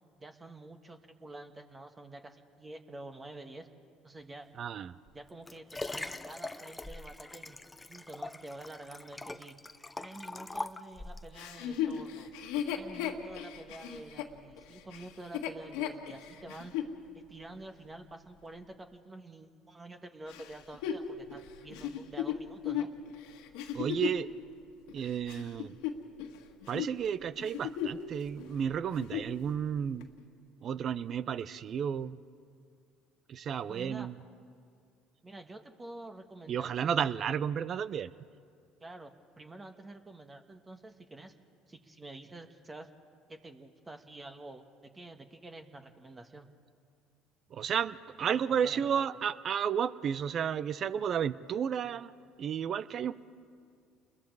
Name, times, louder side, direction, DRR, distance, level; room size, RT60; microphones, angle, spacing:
voice 1, 0.2-3.7 4.0-4.5 5.1-9.6 10.0-12.3 12.7-16.7 17.1-22.9 33.7-34.1 35.2-37.4 38.8-41.3 41.7-42.9 43.3-46.5 48.3-49.2, right 2 dB, 25° right, 6 dB, 1.6 m, -48 dB
voice 2, 4.6-4.9 23.7-24.3 24.9-25.8 26.7-30.1 30.6-32.2 33.3-34.1 36.5-38.1 47.5-52.1 52.4-53.1, right 8 dB, 50° right, 17 dB, 0.7 m, -32 dB
Liquid, 5.1-11.3 12.0-12.1, left 2 dB, 15° left, 0.9 m, -42 dB
Chuckle chortle, 11.3-16.9 17.5-17.6 20.3-24.3 24.9-26.4 26.6-26.9 27.4-28.1 28.4-28.5 28.9-29.4 30.0-30.1, left 9 dB, 75° left, 1.7 m, -36 dB
29.5 x 21.5 x 4.8 m, 2.2 s
hypercardioid pair, 70°, 0 cm